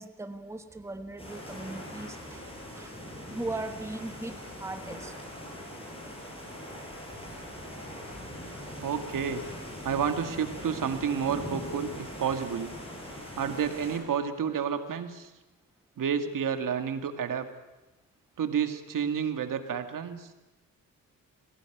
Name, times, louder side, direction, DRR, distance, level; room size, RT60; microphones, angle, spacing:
voice 1, 0.0-2.5 2.7-3.0 3.3-5.1, right 2 dB, 10° right, 8 dB, 1.2 m, -38 dB
sound 1, 1.2-14.0, left 1 dB, 15° left, 7.7 m, -41 dB
voice 2, 8.8-9.4 9.8-11.9 12.2-12.7 13.4-15.3 16.0-17.5 18.4-20.3, right 7 dB, 65° right, 7 dB, 2.1 m, -30 dB
21.0 x 17.0 x 9.2 m, 1.1 s
cardioid pair, 105°, 34 cm